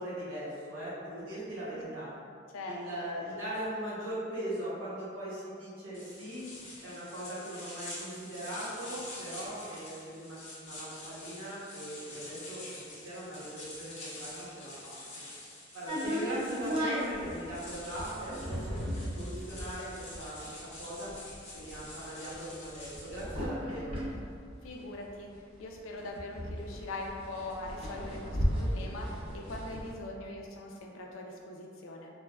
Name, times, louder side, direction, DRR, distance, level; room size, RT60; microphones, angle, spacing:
voice 1, 0.0-2.1 2.7-6.5 6.8-12.7 13.0-15.0 15.7-18.9 19.1-21.1 21.5-24.0, right 1 dB, 80° right, -8 dB, 0.9 m, -40 dB
sound 1, 5.9-23.4, left 2 dB, 35° left, 0.6 m, -47 dB
sound 2, 15.9-25.4 25.7-25.8 26.0-29.9, equal, 30° right, 0.5 m, -36 dB
voice 2, 24.6-25.3 25.6-29.1 29.3-32.1, left 2 dB, 90° left, 0 dB, 0.4 m, -41 dB
3.2 x 2.1 x 2.2 m, 2.3 s
head